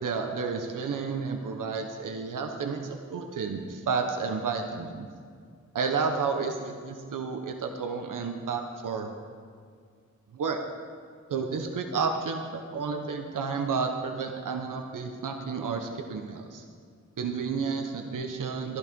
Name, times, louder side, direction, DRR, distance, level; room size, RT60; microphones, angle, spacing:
voice 1, 0.0-5.1 5.7-9.1 10.3-10.6 11.3-16.6 17.2-18.8, right 5 dB, 85° right, 4 dB, 1.0 m, -31 dB
13.0 x 11.5 x 5.3 m, 2.1 s
cardioid pair, 50°, 31 cm